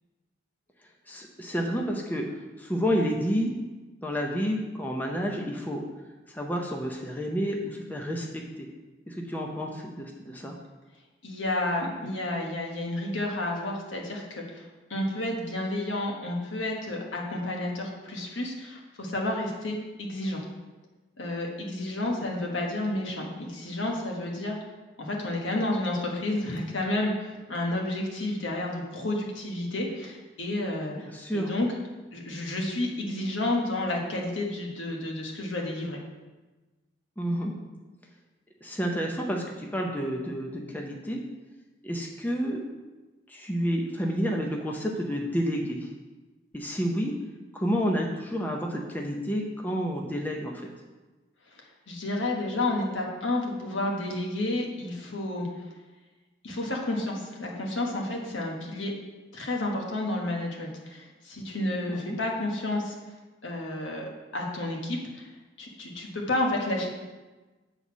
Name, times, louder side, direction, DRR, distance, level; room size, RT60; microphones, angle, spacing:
voice 1, 1.1-2.3 2.6-3.5 4.0-5.8 6.3-8.7 9.1-10.6 22.2-22.3 31.0-31.5 37.2-37.5 38.6-41.2 41.8-42.6 43.3-45.9 46.5-47.1 47.5-50.7 61.9-62.2, equal, 10° left, 0 dB, 0.6 m, -30 dB
voice 2, 11.2-20.4 21.2-24.6 25.0-30.9 31.3-31.7 32.1-36.0 51.5-55.5 56.4-58.9 59.3-62.9 63.4-65.3 65.6-66.9, left 1 dB, 75° left, 0 dB, 1.4 m, -31 dB
7.9 x 4.1 x 6.0 m, 1.2 s
head